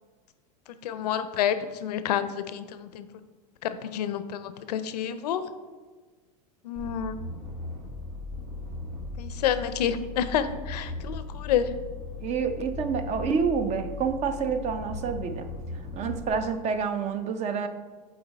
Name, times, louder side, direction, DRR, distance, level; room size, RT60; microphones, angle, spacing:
voice 1, 0.8-3.1 3.6-5.4 6.6-7.1 9.2-11.7, left 9 dB, 80° left, 12 dB, 0.5 m, -29 dB
sound 1, 6.8-16.3, left 3 dB, 70° right, 1.7 m, -38 dB
voice 2, 12.2-15.5 15.9-17.7, right 6 dB, 35° right, 9 dB, 0.6 m, -28 dB
6.7 x 4.1 x 4.0 m, 1.4 s
hypercardioid pair, 110°, 20 cm